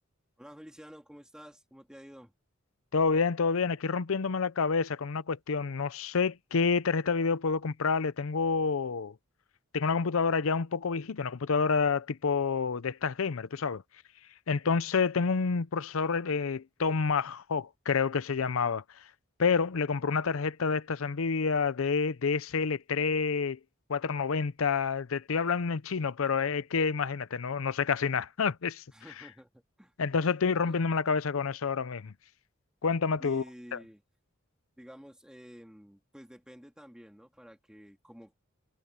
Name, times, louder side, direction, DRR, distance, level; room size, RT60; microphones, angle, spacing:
voice 1, 0.4-2.3 28.9-29.9 30.6-30.8 33.2-34.0 34.8-38.3, equal, 5° right, 2.1 m, -50 dB
voice 2, 2.9-9.1 9.7-13.8 14.5-19.0 19.4-23.6 23.9-28.8 30.0-32.1 32.8-33.4 33.7-33.8, left 5 dB, 80° left, 0.6 m, -28 dB
head